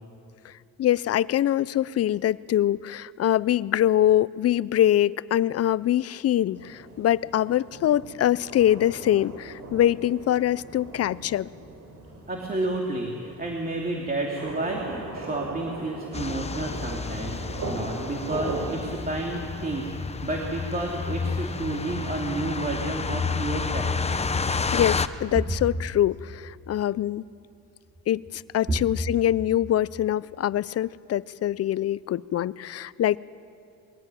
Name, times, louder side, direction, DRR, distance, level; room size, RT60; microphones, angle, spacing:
voice 1, 0.8-11.5 24.7-27.2 28.1-33.2, left 12 dB, 55° left, 20 dB, 0.6 m, -24 dB
sound 1, 6.5-18.9, right 2 dB, 60° right, 5.4 m, -39 dB
voice 2, 12.3-23.9, right 2 dB, 30° right, -1 dB, 3.0 m, -31 dB
sound 2, 16.1-25.1, left 4 dB, 20° left, 0.9 m, -30 dB
22.5 x 16.5 x 9.1 m, 2.6 s
cardioid pair, 90°, 30 cm